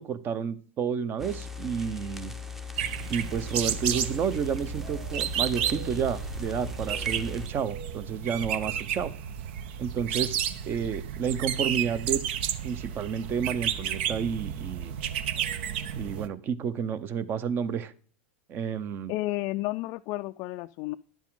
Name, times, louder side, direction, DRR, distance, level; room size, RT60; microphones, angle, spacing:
voice 1, 0.0-2.3 3.1-9.1 9.8-10.4 10.6-12.2 12.6-14.9 15.9-17.9 18.5-19.1, right 7 dB, 35° right, 15 dB, 0.8 m, -30 dB
sound 1, 1.2-7.5, left 5 dB, 5° right, 0.7 m, -39 dB
sound 2, 2.8-16.3, right 9 dB, 70° right, 0.8 m, -32 dB
voice 2, 19.1-21.0, left 19 dB, 50° left, 9 dB, 0.3 m, -31 dB
10.5 x 7.4 x 3.8 m, 0.43 s
hypercardioid pair, 105°, 6 cm